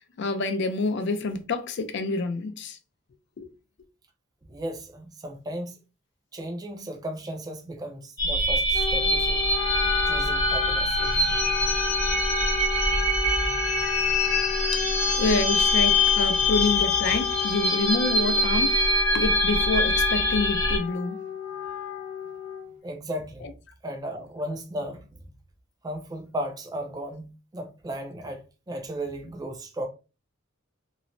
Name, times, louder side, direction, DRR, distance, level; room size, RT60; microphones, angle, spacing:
voice 1, 0.2-2.8 3.4-3.5 14.7-14.8 15.2-18.9 19.1-21.2, left 3 dB, 60° left, 0.4 m, -27 dB
voice 2, 4.4-5.8 6.3-9.5 10.1-11.3 22.8-23.5 23.8-25.2 25.8-29.9, right 1 dB, 20° right, 0.4 m, -35 dB
sound 1, 8.2-20.8, left 1 dB, 15° left, 0.7 m, -24 dB
Wind instrument woodwind instrument, 8.7-22.8, left 10 dB, 80° left, 0.8 m, -33 dB
3.0 x 2.0 x 2.5 m
head